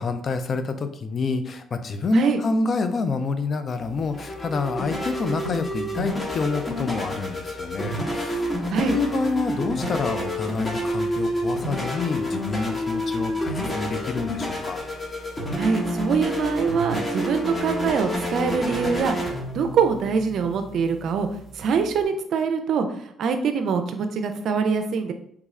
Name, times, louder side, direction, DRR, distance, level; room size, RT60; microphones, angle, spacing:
voice 1, 0.0-8.5 8.8-14.8, left 4 dB, 50° left, 9 dB, 0.4 m, -27 dB
sound 1, 3.8-22.0, equal, 25° left, 1.0 m, -29 dB
voice 2, 15.6-19.2 19.5-21.3 21.5-25.1, right 5 dB, 65° right, 7 dB, 0.4 m, -24 dB
3.4 x 2.3 x 3.1 m, 0.68 s
supercardioid pair, 75°, 0 cm